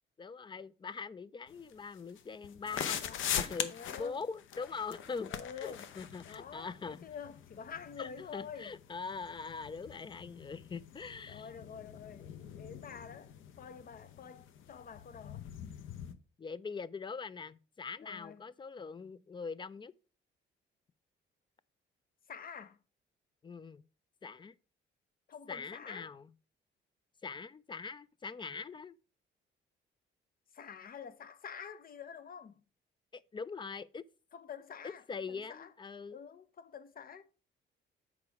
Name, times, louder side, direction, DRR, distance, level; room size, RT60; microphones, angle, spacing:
voice 1, 0.2-3.0 3.3-7.1 8.0-11.5 16.4-19.9 23.4-23.9 24.2-24.5 25.5-26.3 27.2-28.9 33.1-34.0 34.8-36.2, left 5 dB, 25° left, 0.4 m, -42 dB
sound 1, 1.5-16.1, left 9 dB, 80° left, 0.7 m, -43 dB
voice 2, 3.0-3.4 3.7-4.2 5.3-5.9 6.2-8.7 11.3-15.5 18.0-18.4 22.3-22.8 25.3-26.1 30.5-32.6 34.3-35.7 36.1-37.2, left 7 dB, 45° left, 0.8 m, -48 dB
7.0 x 4.8 x 4.7 m
cardioid pair, 90°, 20 cm